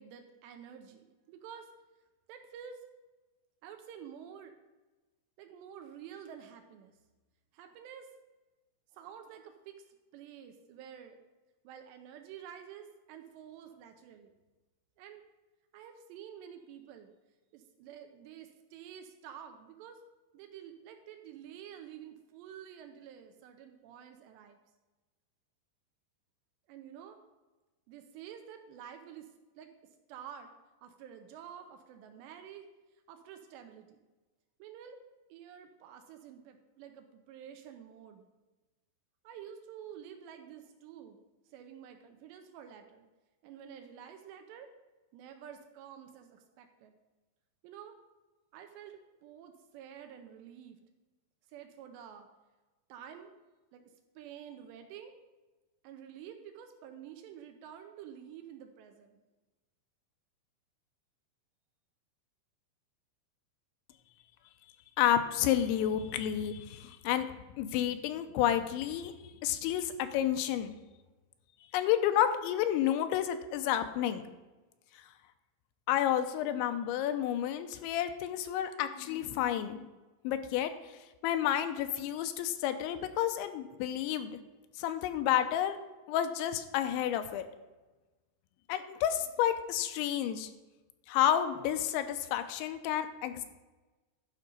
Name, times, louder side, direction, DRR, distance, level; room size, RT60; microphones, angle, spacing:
voice 1, 0.0-1.7 2.3-2.8 3.6-4.6 5.4-6.9 7.5-8.1 8.9-9.8 10.1-11.2 11.6-14.3 15.0-15.2 15.7-17.1 17.5-20.0 20.3-24.6 26.7-27.2 27.9-29.3 29.6-29.7 30.1-30.5 30.8-32.7 33.1-34.0 34.6-35.0 35.3-38.3 39.2-41.2 41.5-43.1 43.4-44.7 45.1-46.9 47.6-47.9 48.5-50.8 51.5-52.3 52.9-53.3 53.7-53.9 54.2-55.1 55.8-59.2, right 9 dB, 80° right, 6 dB, 2.8 m, -49 dB
voice 2, 65.0-67.3 67.6-69.1 69.4-70.7 71.7-74.2 75.9-79.8 80.2-80.7 81.2-84.4 84.8-85.8 86.1-87.4 88.7-90.5 91.1-93.5, left 11 dB, 85° left, 9 dB, 3.0 m, -30 dB
12.0 x 5.3 x 5.3 m, 1.2 s
omnidirectional pair, 5.3 m